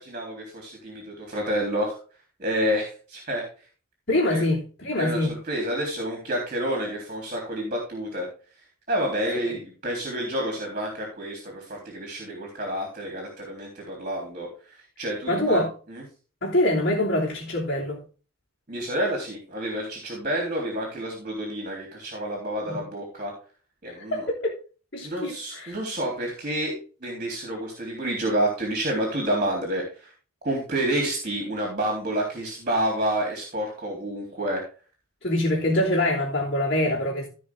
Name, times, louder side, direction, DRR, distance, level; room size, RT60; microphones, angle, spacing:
voice 1, 0.0-2.0 2.4-3.4 4.3-4.4 5.0-8.3 8.9-14.5 15.0-15.6 15.9-16.0 18.7-23.3 23.8-24.3 25.0-26.7 27.0-30.1 30.4-34.6, right 1 dB, 35° right, 3.6 m, -29 dB
voice 2, 4.1-5.3 9.4-9.6 15.3-15.7 16.4-18.0 22.6-22.8 24.1-24.5 24.9-25.8 35.2-37.3, left 1 dB, 50° left, 3.2 m, -24 dB
16.0 x 5.4 x 3.7 m
head